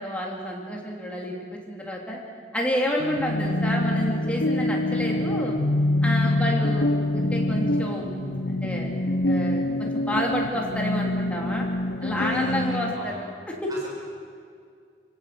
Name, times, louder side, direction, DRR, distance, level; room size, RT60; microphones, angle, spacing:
voice 1, 0.0-2.2 2.5-5.6 6.0-8.1 8.5-11.7 12.0-13.3 13.6-13.7, equal, 5° left, -2 dB, 3.1 m, -29 dB
sound 1, 3.0-12.9, left 1 dB, 75° left, 0.8 m, -25 dB
sound 2, 4.8-10.5, left 2 dB, 65° right, 3.4 m, -39 dB
voice 2, 12.0-13.2 13.7-13.9, equal, 20° right, -5 dB, 6.8 m, -40 dB
28.0 x 17.0 x 6.9 m, 2.2 s
head